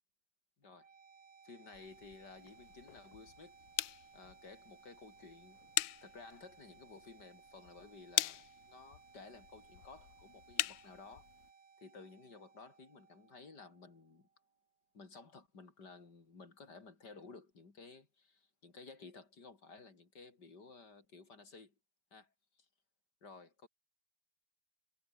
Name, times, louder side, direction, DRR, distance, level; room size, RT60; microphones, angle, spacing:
sound 1, 0.6-14.6, right 6 dB, 40° right, 1.4 m, -62 dB
voice 1, 1.4-3.6 4.1-5.6 6.0-11.3 11.8-14.3 14.9-21.7 22.1-22.7 23.2-23.7, left 4 dB, 60° left, 4.0 m, -55 dB
sound 2, 1.7-11.5, left 17 dB, 85° left, 1.3 m, -42 dB
omnidirectional pair, 2.0 m